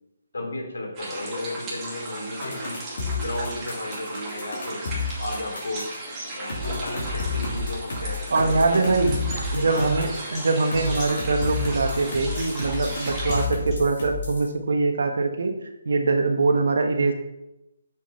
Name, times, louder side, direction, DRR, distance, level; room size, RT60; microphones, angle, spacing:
voice 1, 0.3-2.8 3.2-4.8 5.2-5.9 6.3-9.2 9.5-10.4, left 2 dB, 90° left, 0 dB, 3.0 m, -34 dB
sound 1, 0.9-13.5, right 2 dB, 20° right, 2.4 m, -36 dB
sound 2, 2.4-5.9 6.5-10.2 10.7-14.5, left 4 dB, 60° left, 3.3 m, -30 dB
voice 2, 8.3-9.2 9.5-17.1, right 3 dB, 75° right, 5 dB, 1.4 m, -23 dB
sound 3, 9.4-13.8, left 2 dB, 25° left, 2.8 m, -43 dB
7.6 x 6.1 x 4.4 m, 0.90 s
hypercardioid pair, 160°, 0 cm